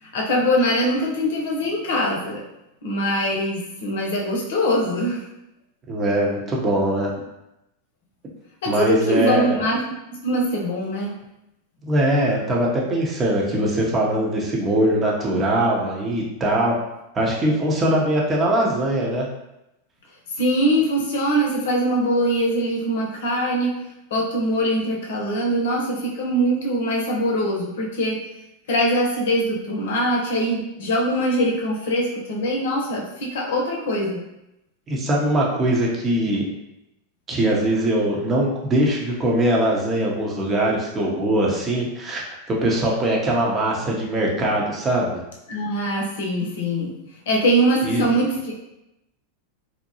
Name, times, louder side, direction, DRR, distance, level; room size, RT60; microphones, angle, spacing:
voice 1, 0.0-2.4 2.8-5.2 8.6-9.8 10.1-11.2 20.4-23.7 24.1-28.2 28.7-34.2 45.5-46.9 47.3-48.6, equal, 70° left, -2 dB, 0.7 m, -22 dB
voice 2, 5.9-7.1 8.7-9.6 11.8-16.7 17.1-19.3 34.9-36.4 37.3-45.2 47.8-48.0, right 1 dB, 25° right, -2 dB, 0.8 m, -21 dB
2.7 x 2.1 x 2.8 m, 0.88 s
hypercardioid pair, 95°, 0 cm